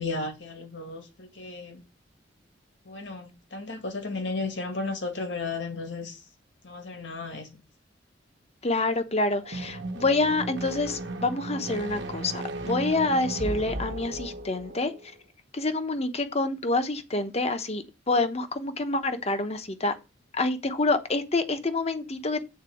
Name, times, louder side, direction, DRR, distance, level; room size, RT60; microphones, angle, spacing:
voice 1, 0.0-1.8 2.8-6.3 6.6-7.6, left 3 dB, 70° left, 2.0 m, -34 dB
voice 2, 8.6-14.9 15.5-19.9 20.3-22.5, left 2 dB, 35° left, 1.0 m, -27 dB
sound 1, 9.4-15.1, right 2 dB, 65° right, 1.2 m, -35 dB
8.9 x 4.1 x 6.9 m
head